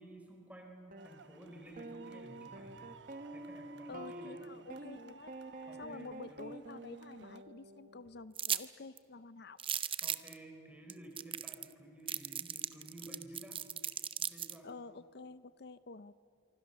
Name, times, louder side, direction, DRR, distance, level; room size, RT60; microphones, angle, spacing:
voice 1, 0.0-2.9 3.3-4.5 5.7-6.4 10.0-13.6 14.2-14.7, right 1 dB, 10° right, 2 dB, 4.6 m, -53 dB
sound 1, 0.9-1.1 1.8-8.1, right 2 dB, 50° right, 1.1 m, -48 dB
sound 2, 1.0-7.4, right 5 dB, 70° right, 1.1 m, -57 dB
voice 2, 3.9-5.3 5.8-9.6 14.6-16.1, left 3 dB, 60° left, 14 dB, 0.6 m, -49 dB
sound 3, 8.4-8.6 9.0-9.1 9.6-10.3 10.9-11.0 11.2-11.7 12.1-14.6, right 9 dB, 30° right, 0.7 m, -36 dB
26.0 x 24.0 x 6.9 m, 2.6 s
head